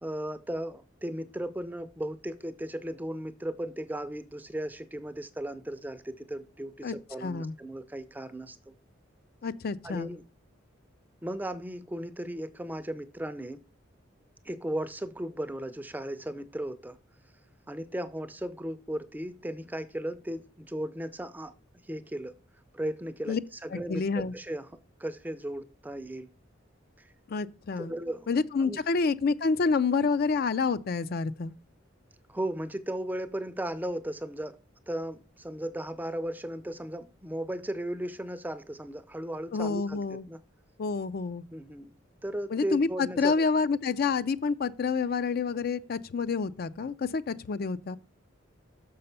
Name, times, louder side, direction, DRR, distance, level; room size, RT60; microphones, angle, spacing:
voice 1, 0.0-8.7 9.8-10.2 11.2-13.6 14.4-17.0 17.7-21.5 21.9-22.3 22.7-26.3 27.0-27.1 27.8-28.3 28.6-28.8 32.3-34.6 34.9-40.4 41.5-42.0 42.2-43.5, right 1 dB, 10° right, 0.5 m, -36 dB
voice 2, 7.2-7.5 9.4-10.2 23.3-23.4 23.7-24.3 27.3-27.9 28.3-31.5 39.5-40.3 40.8-41.4 42.5-48.0, left 4 dB, 50° left, 0.4 m, -28 dB
6.6 x 5.5 x 5.4 m
head